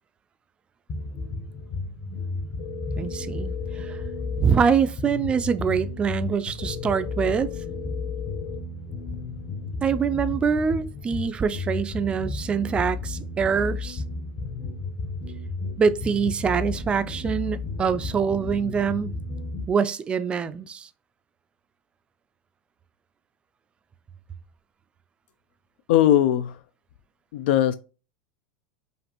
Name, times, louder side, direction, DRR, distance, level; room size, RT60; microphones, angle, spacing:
sound 1, 0.9-19.7, left 3 dB, 35° left, 0.8 m, -33 dB
sound 2, 2.6-4.6 6.6-8.6, left 11 dB, 90° left, 0.8 m, -38 dB
voice 1, 3.0-4.0 4.4-7.5 9.8-14.0 15.8-19.2 19.7-20.9, right 6 dB, 20° right, 0.3 m, -24 dB
voice 2, 25.9-26.5 27.3-27.7, left 12 dB, 75° left, 0.3 m, -19 dB
5.1 x 2.5 x 2.9 m
supercardioid pair, 140°, 6 cm